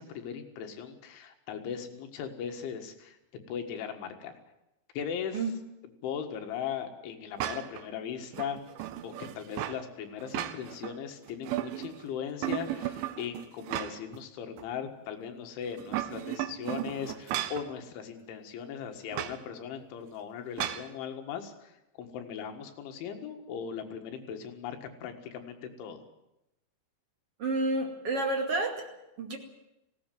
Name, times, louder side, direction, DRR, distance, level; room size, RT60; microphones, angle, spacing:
voice 1, 0.0-3.2 3.5-4.3 5.0-5.4 6.0-8.6 9.0-26.0, left 7 dB, 85° left, 5 dB, 4.2 m, -38 dB
sound 1, 7.4-7.8 8.3-9.8 10.2-10.9 11.3-12.0 12.4-14.2 14.6-14.7 15.7-17.7 19.1-19.4 20.6-20.9, right 13 dB, 90° right, 3.4 m, -35 dB
voice 2, 27.4-28.9 29.2-29.4, right 2 dB, 40° right, 2 dB, 2.5 m, -29 dB
19.0 x 17.0 x 9.2 m, 0.90 s
omnidirectional pair, 5.3 m